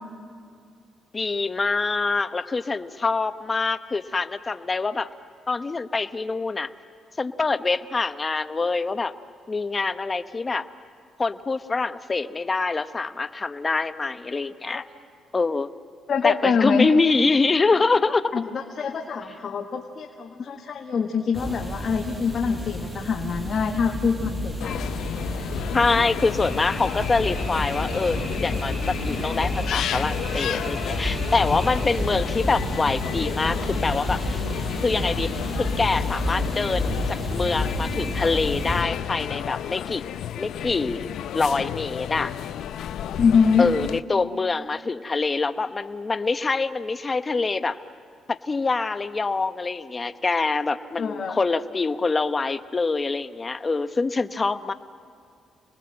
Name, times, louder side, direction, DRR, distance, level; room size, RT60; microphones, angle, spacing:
voice 1, 1.1-5.1 5.5-6.7 7.2-9.1 9.5-10.7 11.2-14.8 15.3-15.7 16.2-18.2 25.7-34.4 34.8-35.3 35.6-40.0 40.4-42.3 43.6-47.8 48.3-54.7, left 3 dB, 30° left, 11 dB, 0.9 m, -25 dB
voice 2, 16.1-16.9 18.3-24.9 43.2-43.7 51.0-51.4, left 6 dB, 50° left, 3 dB, 1.7 m, -24 dB
sound 1, 21.3-38.8, equal, 20° right, 6.6 m, -30 dB
sound 2, 24.6-44.0, left 10 dB, 75° left, 0.7 m, -32 dB
28.5 x 20.5 x 7.8 m, 2.4 s
cardioid pair, 90°, 0 cm